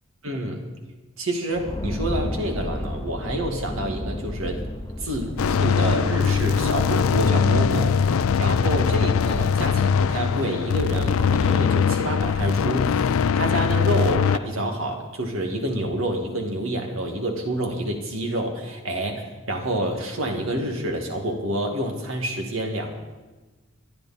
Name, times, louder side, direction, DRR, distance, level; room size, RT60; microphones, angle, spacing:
voice 1, 0.2-0.6 1.2-4.6 5.0-13.0 13.3-22.9, right 1 dB, 80° right, 3 dB, 2.2 m, -28 dB
sound 1, 1.5-11.1, left 1 dB, 15° left, 0.8 m, -34 dB
sound 2, 5.4-14.4, left 6 dB, 85° left, 0.4 m, -21 dB
24.0 x 10.0 x 4.3 m, 1.2 s
head